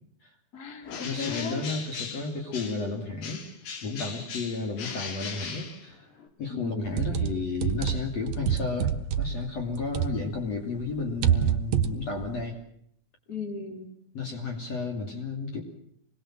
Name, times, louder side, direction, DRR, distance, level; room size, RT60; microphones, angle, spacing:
voice 1, 0.5-1.6 6.5-6.9 13.3-13.9, left 4 dB, 25° left, 5 dB, 3.6 m, -36 dB
Bird, 0.8-2.9 3.2-6.3, left 5 dB, 75° left, 5.0 m, -38 dB
voice 2, 1.0-3.4 3.8-6.1 6.4-12.6 14.1-15.6, left 4 dB, 45° left, 2 dB, 3.7 m, -32 dB
sound 1, 6.8-10.5 10.8-12.4, right 9 dB, 60° right, 2.1 m, -27 dB
27.0 x 21.5 x 7.6 m, 0.70 s
omnidirectional pair, 4.6 m